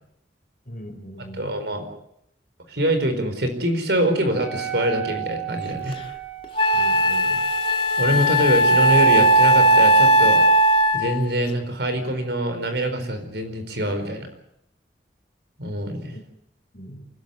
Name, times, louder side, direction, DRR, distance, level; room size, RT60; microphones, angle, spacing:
voice 1, 0.7-1.6 6.7-7.4 16.1-16.2 16.7-17.1, equal, 50° left, 5 dB, 4.2 m, -39 dB
voice 2, 1.2-1.9 2.7-6.0 8.0-10.4 10.9-14.3 15.6-16.1, right 1 dB, 75° right, 8 dB, 4.6 m, -24 dB
Wind instrument woodwind instrument, 4.2-10.0, right 13 dB, 10° right, 4.0 m, -36 dB
Wind instrument woodwind instrument 2, 5.9-6.0 6.6-11.2, right 1 dB, 30° left, 1.9 m, -17 dB
29.0 x 12.0 x 9.6 m, 0.78 s
head